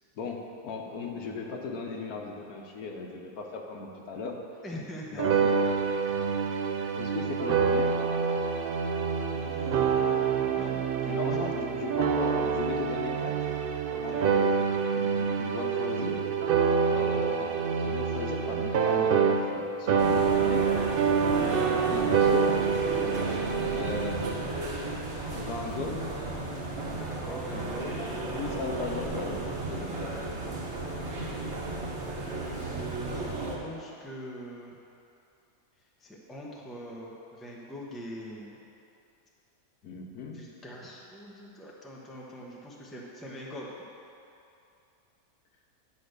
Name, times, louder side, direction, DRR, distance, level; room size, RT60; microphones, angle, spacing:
voice 1, 0.1-4.4 5.1-5.8 7.0-7.9 10.2-13.5 14.0-14.4 14.7-16.3 16.9-20.7 21.9-22.6 23.7-24.4 25.3-26.1 28.3-29.4 29.7-30.1 39.8-40.4, left 4 dB, 80° left, 1 dB, 1.4 m, -37 dB
voice 2, 4.6-5.4 6.2-6.5 9.3-11.4 13.9-14.6 21.3-21.9 22.9-24.0 26.9-28.0 32.2-33.3 33.6-34.8 36.0-38.5 40.3-43.7, equal, ahead, -3 dB, 0.7 m, -43 dB
sound 1, 5.2-19.6 19.9-24.3, right 6 dB, 85° right, 0.5 m, -26 dB
sound 2, 20.0-33.6, right 2 dB, 50° right, 1.3 m, -34 dB
9.6 x 4.2 x 6.6 m, 2.6 s
omnidirectional pair, 1.6 m